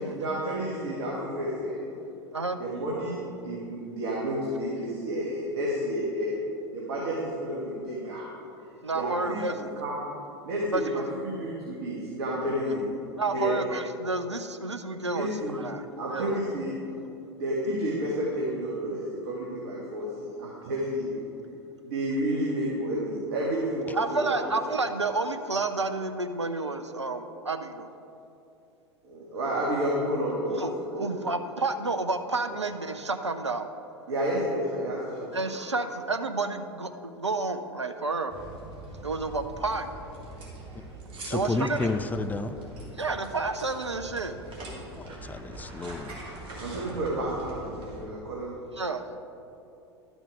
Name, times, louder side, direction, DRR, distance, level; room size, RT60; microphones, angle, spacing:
voice 1, 0.0-1.8 2.6-6.3 6.7-8.2 8.9-10.1 10.4-12.9 13.3-13.6 15.1-15.6 15.9-16.7 17.3-21.2 21.8-24.5 29.0-31.3 32.4-32.5 34.1-35.6 46.6-48.5, equal, 55° right, -5 dB, 1.8 m, -30 dB
voice 2, 8.8-9.5 10.7-11.0 13.2-15.8 16.1-16.3 23.9-27.9 30.6-30.7 31.0-33.7 35.3-38.3 39.0-39.9 41.3-41.8 43.0-44.3 48.8-49.0, right 3 dB, 85° right, 8 dB, 0.5 m, -30 dB
sound 1, 38.3-48.1, right 1 dB, 35° right, 2.5 m, -43 dB
voice 3, 41.2-42.6 45.0-46.2, left 3 dB, 10° left, 10 dB, 0.4 m, -31 dB
12.0 x 6.2 x 5.0 m, 2.8 s
figure-of-eight pair, 85°, 14 cm